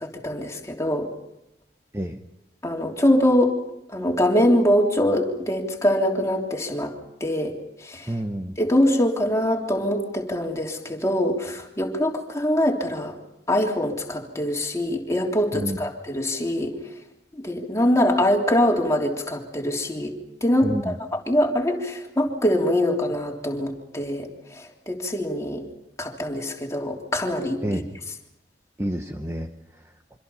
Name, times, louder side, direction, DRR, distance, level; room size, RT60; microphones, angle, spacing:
voice 1, 0.0-1.1 2.6-3.6 3.9-6.9 7.2-7.5 7.8-8.1 8.6-13.1 13.5-16.8 17.4-25.6 26.0-27.8, left 1 dB, 15° left, 0 dB, 3.3 m, -23 dB
voice 2, 8.1-8.5 15.5-15.8 20.6-21.0 27.6-28.0 28.8-30.2, right 1 dB, 15° right, 5 dB, 1.0 m, -30 dB
26.0 x 25.5 x 5.6 m, 0.87 s
head